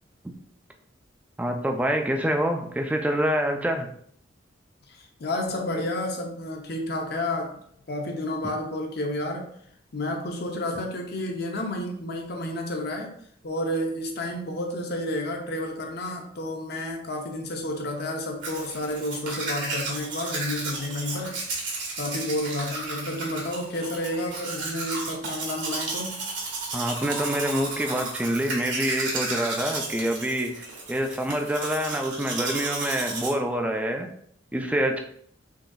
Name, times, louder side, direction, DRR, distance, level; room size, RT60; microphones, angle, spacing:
voice 1, 1.4-3.9 26.7-34.1 34.5-35.0, equal, 5° right, 3 dB, 0.3 m, -26 dB
voice 2, 4.9-7.6 7.9-9.5 9.9-13.1 13.4-21.4 21.9-26.2, left 1 dB, 55° left, 2 dB, 0.7 m, -31 dB
Domestic sounds home sounds, 18.4-33.3, right 3 dB, 65° right, 1.2 m, -33 dB
3.9 x 3.7 x 2.3 m, 0.65 s
head